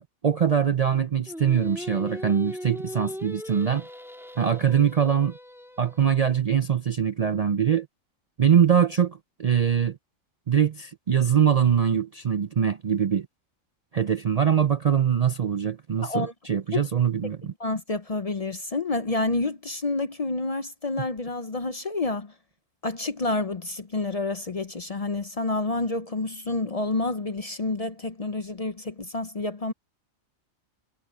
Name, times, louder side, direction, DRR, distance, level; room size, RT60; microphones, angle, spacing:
voice 1, 0.0-3.9 4.4-5.4 5.8-7.9 8.4-10.0 10.5-13.3 13.9-17.5, right 8 dB, 70° right, 0.3 m, -23 dB
Singing, 1.3-6.4, equal, ahead, 2.0 m, -39 dB
voice 2, 16.0-16.3 16.7-16.9 17.6-22.3 22.8-29.7, left 2 dB, 40° left, 0.6 m, -29 dB
omnidirectional pair, 1.4 m